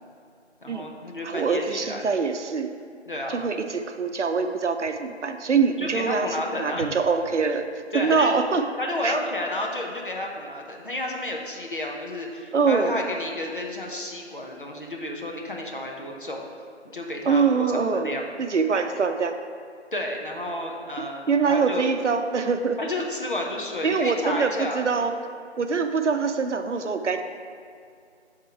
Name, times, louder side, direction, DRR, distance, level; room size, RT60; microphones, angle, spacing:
voice 1, 0.6-2.1 3.1-3.4 5.8-6.8 7.9-8.3 8.8-16.5 16.9-18.2 19.9-21.9 22.8-24.8, left 1 dB, 45° left, 0 dB, 0.7 m, -31 dB
voice 2, 1.2-2.7 3.3-6.3 6.6-7.7 7.9-8.6 9.0-9.1 12.5-13.0 17.3-19.3 21.0-22.8 23.8-25.1 25.6-27.2, right 5 dB, 85° right, 7 dB, 0.6 m, -24 dB
6.4 x 3.7 x 4.6 m, 2.3 s
figure-of-eight pair, 170°, 35 cm